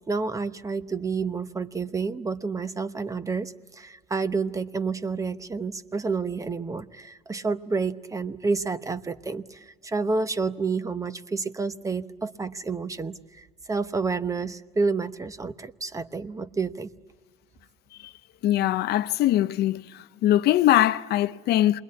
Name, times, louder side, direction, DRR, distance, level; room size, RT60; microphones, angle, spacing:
voice 1, 0.1-16.9, right 4 dB, 20° right, 0.9 m, -29 dB
voice 2, 18.4-19.8 20.2-21.8, left 13 dB, 70° left, 0.8 m, -21 dB
27.5 x 21.5 x 8.4 m
cardioid pair, 110°, 17 cm